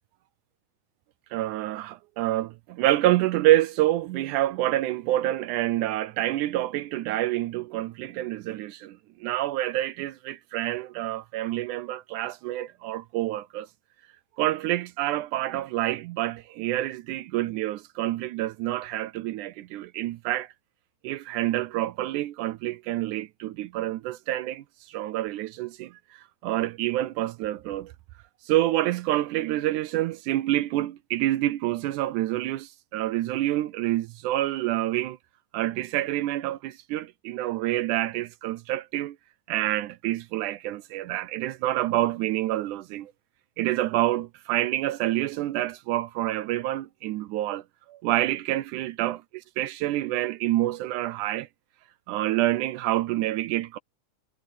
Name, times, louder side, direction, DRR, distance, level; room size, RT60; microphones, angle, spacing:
voice 1, 1.3-13.7 14.4-20.5 21.0-25.9 26.4-27.9 28.5-35.2 35.5-39.2 39.5-43.1 43.6-47.6 47.9-49.2 49.6-51.5 52.1-53.8, right 15 dB, 80° right, 2.0 m, -27 dB
omnidirectional pair, 3.6 m